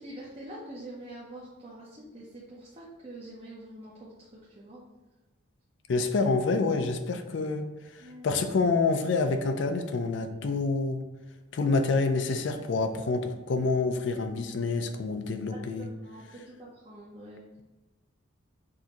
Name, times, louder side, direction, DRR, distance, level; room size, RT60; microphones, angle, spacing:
voice 1, 0.0-4.8 8.0-8.3 15.5-17.5, right 1 dB, 30° right, -6 dB, 0.6 m, -45 dB
voice 2, 5.9-7.7 8.2-11.0 11.5-15.9, left 3 dB, 60° left, 7 dB, 0.4 m, -27 dB
6.2 x 2.6 x 2.9 m, 1.1 s
head